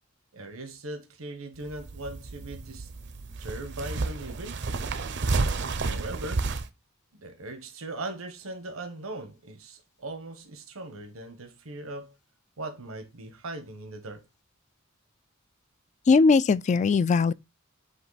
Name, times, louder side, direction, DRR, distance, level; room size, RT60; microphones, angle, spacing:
voice 1, 0.3-2.9 3.4-4.6 5.8-6.5 7.2-12.1 12.6-14.2, right 2 dB, 85° right, 1.2 m, -39 dB
sound 1, 1.5-6.7, right 3 dB, 60° right, 0.7 m, -31 dB
voice 2, 16.1-17.3, left 4 dB, 35° left, 0.3 m, -20 dB
7.9 x 3.1 x 4.0 m
head